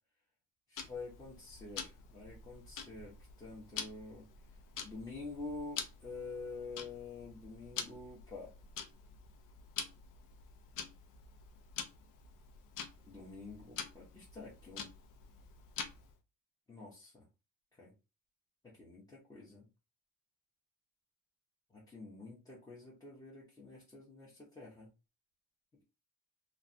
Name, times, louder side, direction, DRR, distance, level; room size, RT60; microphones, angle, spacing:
voice 1, 0.7-4.3 4.8-8.5 13.0-14.9 16.7-17.2 17.8-17.9 18.8-19.7 21.7-24.9, left 3 dB, 10° left, -6 dB, 0.7 m, -48 dB
Tick-tock, 0.8-16.2, left 6 dB, 65° left, 0.6 m, -47 dB
3.1 x 2.3 x 2.5 m, 0.30 s
cardioid pair, 175°, 35 cm